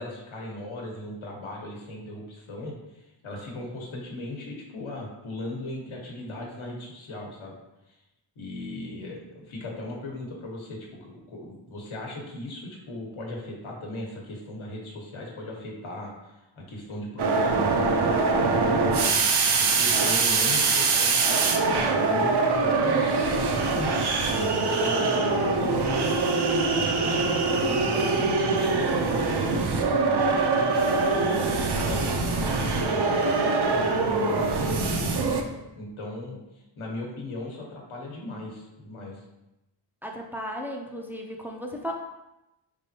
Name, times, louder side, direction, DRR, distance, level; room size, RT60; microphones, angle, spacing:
voice 1, 0.0-7.5 8.4-18.6 19.0-19.2 19.6-26.3 26.7-29.2 30.0-35.5 35.8-36.4 36.8-39.2, left 1 dB, 85° left, -1 dB, 1.2 m, -37 dB
sound 1, 17.2-35.4, right 3 dB, 55° right, 0.6 m, -23 dB
voice 2, 40.0-41.9, equal, 5° right, 1 dB, 0.4 m, -35 dB
5.2 x 3.4 x 2.8 m, 0.94 s
wide cardioid pair, 130°, 47 cm